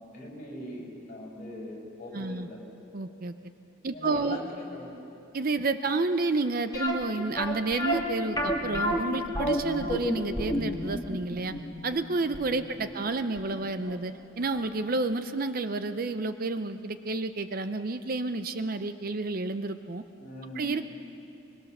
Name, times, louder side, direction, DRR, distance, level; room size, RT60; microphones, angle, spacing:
voice 1, 0.0-2.6 3.9-4.9 12.6-12.9 20.2-20.8, left 1 dB, 40° left, -3 dB, 5.6 m, -41 dB
voice 2, 2.1-2.5 2.9-3.5 3.8-4.4 5.3-11.5 11.8-20.0 20.6-20.8, right 3 dB, 45° right, 10 dB, 0.6 m, -30 dB
sound 1, 6.7-13.6 13.9-14.0 14.5-14.7 15.0-15.1, equal, 20° left, 1.9 m, -30 dB
23.0 x 22.0 x 6.7 m, 2.8 s
head